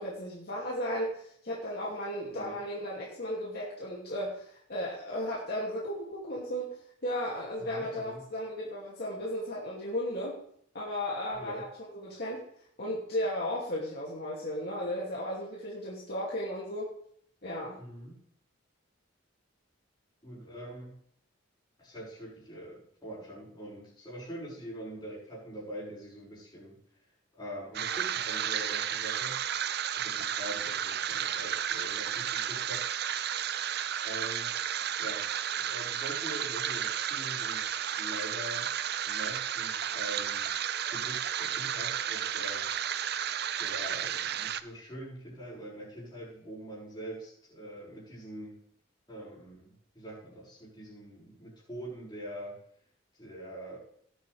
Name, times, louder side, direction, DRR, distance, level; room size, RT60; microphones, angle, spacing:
voice 1, 0.0-6.8 7.0-10.3 10.7-11.7 11.9-12.4 12.8-16.9 17.4-17.8, equal, 50° left, -5 dB, 2.5 m, -35 dB
voice 2, 7.7-8.2 11.4-11.7 17.8-18.2 20.2-21.0 21.8-26.8 27.3-29.4 29.9-32.9 34.0-34.5 35.0-35.2 35.6-37.7 38.0-38.7 39.1-40.5 40.9-42.7 43.6-48.6 49.1-52.6 53.1-53.8, right 1 dB, 20° left, -6 dB, 5.9 m, -43 dB
sound 1, 27.7-44.6, right 9 dB, 50° right, 0.5 m, -33 dB
18.5 x 8.4 x 3.4 m, 0.66 s
head